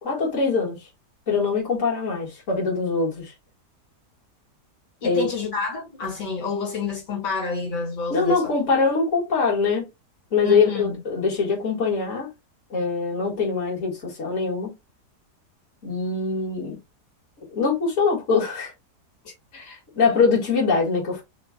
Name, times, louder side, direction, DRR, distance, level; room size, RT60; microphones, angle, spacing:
voice 1, 0.0-0.8 1.3-3.3 5.0-5.3 8.1-9.9 10.3-12.3 12.7-14.7 15.8-16.8 17.5-18.7 19.5-21.2, left 4 dB, 50° left, 2.2 m, -23 dB
voice 2, 5.0-8.5 10.4-11.0 19.2-19.3, left 4 dB, 85° left, 2.4 m, -29 dB
4.2 x 3.1 x 2.2 m
omnidirectional pair, 1.8 m